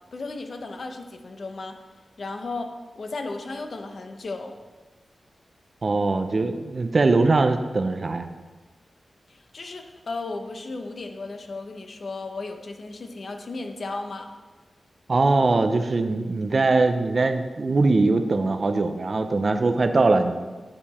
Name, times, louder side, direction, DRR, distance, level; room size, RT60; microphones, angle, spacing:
voice 1, 0.1-1.8 2.2-2.7 3.0-4.5 9.3-14.3, left 3 dB, 60° left, 5 dB, 1.0 m, -35 dB
voice 2, 5.8-8.2 15.1-20.3, right 3 dB, 45° right, 7 dB, 0.6 m, -21 dB
9.7 x 6.9 x 4.3 m, 1.3 s
wide cardioid pair, 90°, 0 cm